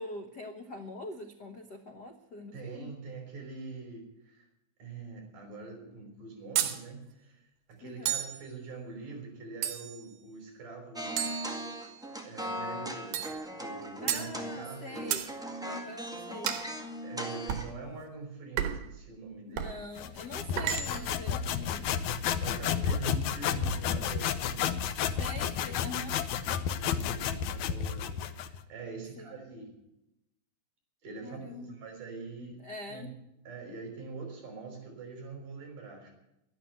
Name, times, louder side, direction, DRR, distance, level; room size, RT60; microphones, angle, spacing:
voice 1, 0.0-2.9 7.8-8.1 14.0-15.3 15.6-16.6 19.5-21.9 25.2-26.1 29.2-29.3 31.2-31.8 32.6-33.1, left 2 dB, 85° left, 5 dB, 0.9 m, -43 dB
voice 2, 2.5-4.5 4.8-11.3 12.2-15.1 17.0-19.7 22.4-24.7 26.7-29.7 31.0-32.6 32.9-33.2 33.4-36.1, right 4 dB, 65° right, 2 dB, 6.6 m, -44 dB
sound 1, 6.6-6.8 8.1-8.4 9.6-10.1 11.2-12.1 13.1-13.4 14.1-14.3 15.1-15.3 16.5-16.7 17.5-17.7 18.6-18.9 19.6-19.8 20.6-21.2, right 10 dB, 90° right, 3.0 m, -32 dB
sound 2, 10.9-17.7, equal, 5° right, 0.8 m, -39 dB
sound 3, 20.0-28.6, left 8 dB, 70° left, 1.9 m, -31 dB
12.0 x 11.5 x 9.3 m, 0.86 s
omnidirectional pair, 4.0 m